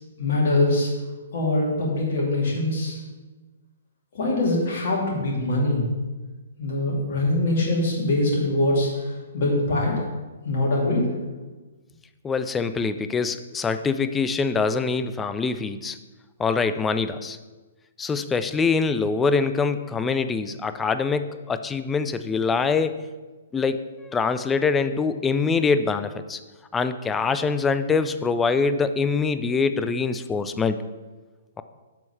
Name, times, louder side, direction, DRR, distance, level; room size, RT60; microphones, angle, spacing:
voice 1, 0.2-0.9 1.3-3.0 4.1-5.8 6.6-10.0 10.4-11.1, left 2 dB, 45° left, -2 dB, 2.5 m, -23 dB
voice 2, 12.2-16.0 16.4-17.4 18.0-23.1 23.5-26.4 26.7-30.8, left 4 dB, 10° left, 11 dB, 0.4 m, -24 dB
7.5 x 5.4 x 5.7 m, 1.3 s
figure-of-eight pair, 120°, 0 cm